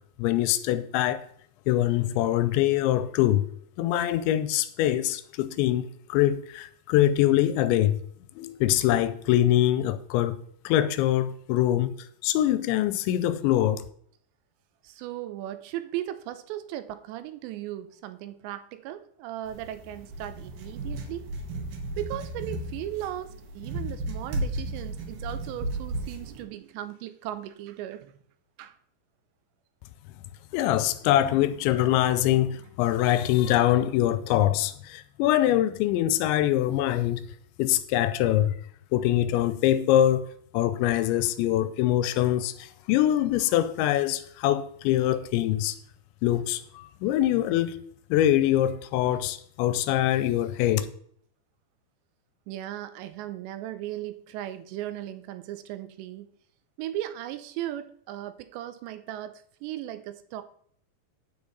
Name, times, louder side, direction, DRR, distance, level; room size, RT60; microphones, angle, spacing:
voice 1, 0.2-1.2 1.7-3.5 3.8-8.0 8.4-10.4 10.7-11.9 12.2-13.8 30.5-37.2 37.6-38.5 38.9-45.8 46.2-47.8 48.1-50.9, left 13 dB, 85° left, 2.9 m, -24 dB
voice 2, 14.8-21.3 22.0-28.1 28.6-28.8 33.4-33.6 52.5-56.3 56.8-60.4, right 13 dB, 80° right, 2.8 m, -37 dB
ink writing, 19.5-26.4, right 1 dB, 60° right, 2.4 m, -34 dB
9.4 x 8.6 x 4.0 m
omnidirectional pair, 5.2 m